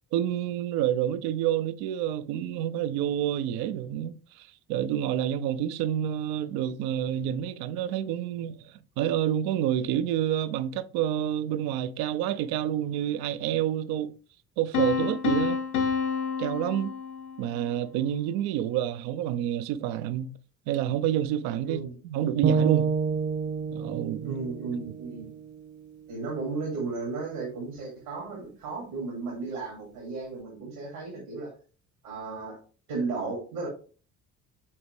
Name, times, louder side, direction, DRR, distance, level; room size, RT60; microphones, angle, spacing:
voice 1, 0.1-14.1 14.6-15.6 16.4-16.9 17.4-20.4 20.7-22.9 23.7-24.4, right 11 dB, 55° right, 0.7 m, -28 dB
Piano, 14.7-17.6, left 6 dB, 80° left, 0.9 m, -29 dB
voice 2, 21.6-22.0 24.2-25.3 26.1-31.5 32.0-32.6 32.9-33.7, right 4 dB, 75° right, 2.5 m, -34 dB
sound 1, 22.4-26.6, right 5 dB, 40° right, 1.0 m, -29 dB
8.6 x 4.3 x 3.2 m
figure-of-eight pair, 50°, 44 cm